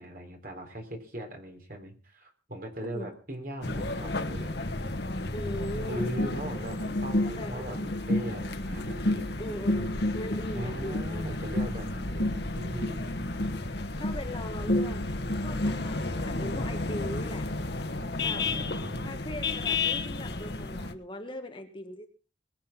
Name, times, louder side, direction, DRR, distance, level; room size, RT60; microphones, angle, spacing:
voice 1, 0.0-4.5 5.9-9.8 10.5-13.3 18.3-19.1, right 1 dB, 50° right, 3 dB, 3.8 m, -39 dB
sound 1, 3.6-20.9, left 2 dB, 60° left, 1.2 m, -31 dB
voice 2, 5.3-6.1 7.2-7.8 9.4-11.4 14.0-15.0 15.4-17.5 18.2-18.5 19.0-22.1, left 1 dB, 25° left, 5 dB, 1.4 m, -40 dB
21.5 x 7.5 x 5.9 m, 0.39 s
head